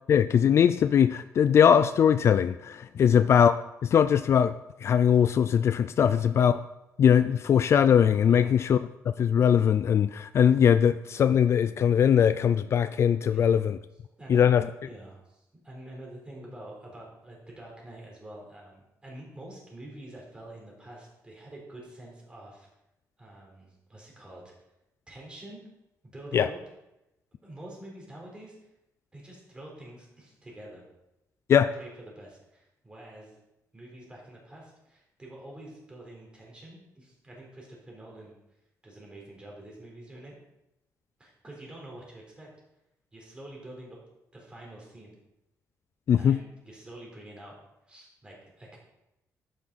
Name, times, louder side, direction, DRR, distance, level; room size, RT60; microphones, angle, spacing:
voice 1, 0.1-3.5 3.8-4.5 4.8-6.5 7.0-8.8 9.2-13.8 14.3-14.6 26.3-26.5 31.5-31.7 46.1-46.4, left 8 dB, 45° left, 13 dB, 0.3 m, -21 dB
voice 2, 6.0-6.3 8.3-8.6 13.3-13.6 14.2-22.7 23.2-24.5 25.1-25.6 26.0-26.6 27.4-28.6 29.1-30.8 31.6-33.4 33.7-38.3 38.8-40.4 41.2-42.5 43.1-44.0 44.3-45.1 46.1-47.6 47.9-48.8, right 1 dB, 15° right, -2 dB, 3.8 m, -47 dB
11.5 x 9.4 x 4.1 m, 0.89 s
cardioid pair, 155°, 6 cm